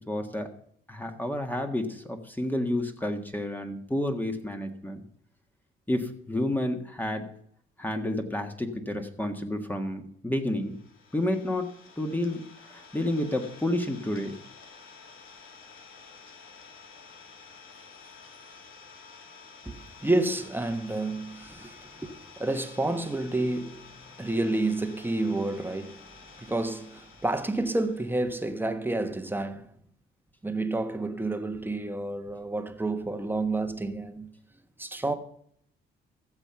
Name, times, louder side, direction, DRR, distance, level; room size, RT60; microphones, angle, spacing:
voice 1, 0.1-0.5 0.9-5.0 5.9-7.3 7.8-10.8 11.1-14.4, left 1 dB, 10° left, 1.7 m, -30 dB
Idling, 10.5-28.2, left 5 dB, 80° left, 2.9 m, -51 dB
voice 2, 20.0-23.9 24.2-26.0 26.4-29.7 30.4-34.3 34.8-35.1, right 2 dB, 10° right, 1.3 m, -29 dB
14.5 x 7.3 x 5.8 m
cardioid pair, 90°, 20 cm